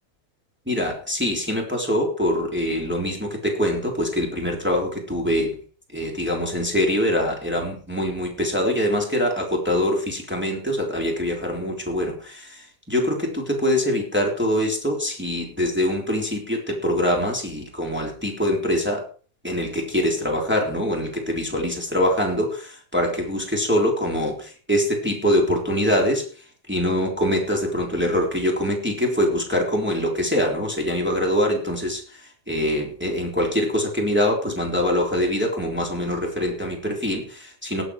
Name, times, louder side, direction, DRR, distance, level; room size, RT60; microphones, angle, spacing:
voice 1, 0.7-5.6 5.9-12.6 12.9-19.0 19.4-26.2 26.7-32.0 32.5-37.8, equal, 5° right, -1 dB, 2.1 m, -24 dB
18.5 x 8.3 x 4.8 m, 0.41 s
omnidirectional pair, 5.7 m